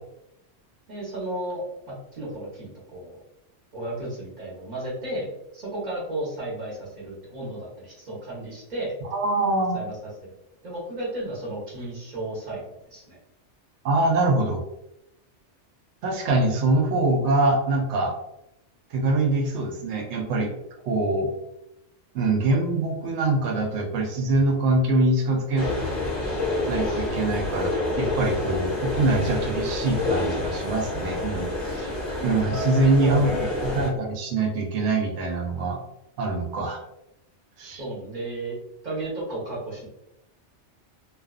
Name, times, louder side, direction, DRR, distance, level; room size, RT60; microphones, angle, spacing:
voice 1, 0.9-3.2 3.7-5.3 5.5-8.9 9.7-9.9 10.6-13.2 33.0-33.6 37.7-38.6 38.8-39.9, right 1 dB, 40° right, -5 dB, 1.0 m, -33 dB
voice 2, 9.1-9.8 13.8-14.6 16.0-18.1 18.9-20.5 20.9-21.3 22.1-25.7 26.7-31.9 32.2-33.3 33.6-35.8 36.2-36.8 37.6-37.8, right 2 dB, 70° right, 2 dB, 0.9 m, -24 dB
sound 1, 25.6-33.9, left 2 dB, 25° left, 0.7 m, -28 dB
2.4 x 2.3 x 2.3 m, 0.85 s
omnidirectional pair, 1.2 m